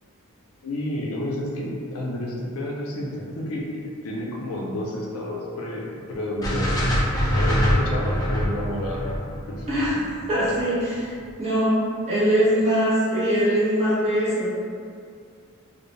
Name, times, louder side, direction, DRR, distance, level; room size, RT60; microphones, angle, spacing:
voice 1, 0.6-6.9 7.3-9.1 9.5-9.6, left 1 dB, 70° left, -3 dB, 0.5 m, -30 dB
sound 1, 6.4-10.6, equal, 15° left, 0.4 m, -24 dB
voice 2, 9.7-14.5, equal, 30° right, -11 dB, 1.0 m, -22 dB
2.5 x 2.0 x 3.1 m, 2.3 s
head